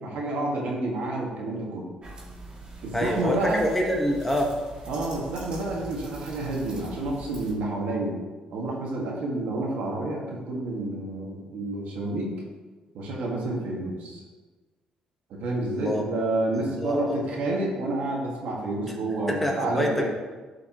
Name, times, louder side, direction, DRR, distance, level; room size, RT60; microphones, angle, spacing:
voice 1, 0.0-1.9 2.8-3.7 4.9-8.2 8.5-12.3 12.9-14.2 15.3-20.1, right 2 dB, 80° right, -2 dB, 1.9 m, -29 dB
sound 1, 2.0-7.5, right 3 dB, 35° right, 2.3 m, -42 dB
voice 2, 2.9-4.5 15.7-16.0 16.7-17.2 18.8-18.9 19.3-20.1, equal, 10° left, 1 dB, 1.2 m, -26 dB
11.5 x 5.0 x 3.0 m, 1.3 s
cardioid pair, 105°, 2 cm